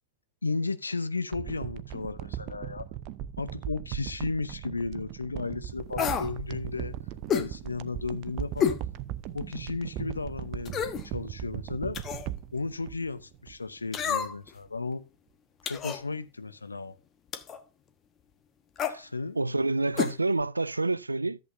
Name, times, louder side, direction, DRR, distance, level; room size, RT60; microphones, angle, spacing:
voice 1, 0.4-2.9 3.4-7.0 7.3-8.8 9.3-10.8 11.0-12.0 12.5-15.1 15.6-17.0 19.0-19.4, left 3 dB, 80° left, 0.8 m, -34 dB
sound 1, 1.3-13.8 14.1-14.2, right 11 dB, 40° right, 0.6 m, -38 dB
sound 2, 6.0-6.3 7.3-7.5 8.6-8.8 9.3-9.4 10.7-11.1 11.9-12.3 13.9-14.5 15.7-16.0 17.3-17.6 18.8-19.0 20.0-20.2 20.4-20.5, left 7 dB, 25° left, 1.1 m, -29 dB
voice 2, 19.4-21.4, right 2 dB, 80° right, 0.4 m, -28 dB
14.0 x 7.9 x 2.6 m
figure-of-eight pair, 90°, 0 cm